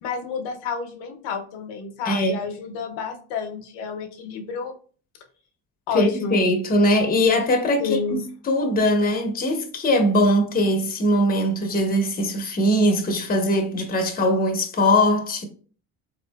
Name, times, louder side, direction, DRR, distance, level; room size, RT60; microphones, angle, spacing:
voice 1, 0.0-4.7 5.9-6.4 7.8-8.3, left 5 dB, 75° left, 0.7 m, -30 dB
voice 2, 2.1-2.4 5.9-15.5, left 1 dB, 20° left, 0.7 m, -21 dB
3.7 x 2.7 x 2.2 m
supercardioid pair, 85°, 43 cm